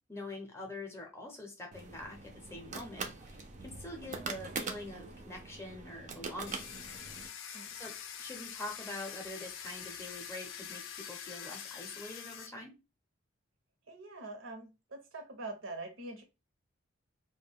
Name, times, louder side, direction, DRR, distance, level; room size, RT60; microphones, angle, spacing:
voice 1, 0.1-6.8 7.7-7.9 8.2-12.7, left 2 dB, 15° left, 1 dB, 0.6 m, -45 dB
sound 1, 1.7-7.3, right 4 dB, 35° right, 0.4 m, -43 dB
Domestic sounds home sounds, 6.5-12.5, left 8 dB, 75° left, 0.4 m, -45 dB
voice 2, 13.9-16.2, right 2 dB, 75° right, 5 dB, 0.7 m, -44 dB
2.2 x 2.2 x 3.4 m, 0.27 s
head